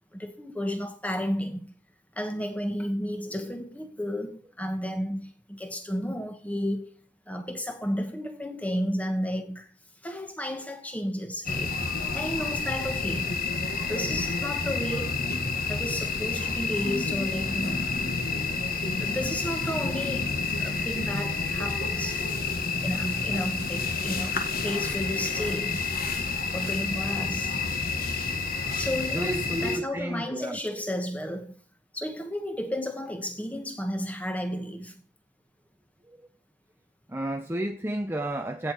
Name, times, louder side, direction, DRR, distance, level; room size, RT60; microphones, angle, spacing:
voice 1, 0.1-1.7 2.1-9.8 10.0-11.8 12.1-13.4 13.9-15.2 15.7-18.2 19.0-22.3 22.8-25.9 26.5-27.6 28.8-31.6 31.9-35.0, equal, 5° left, 1.2 m, -33 dB
sound 1, 11.5-29.8, left 4 dB, 45° left, 1.7 m, -29 dB
voice 2, 29.1-30.6 37.1-38.7, right 1 dB, 10° right, 0.6 m, -31 dB
16.0 x 6.7 x 4.5 m
head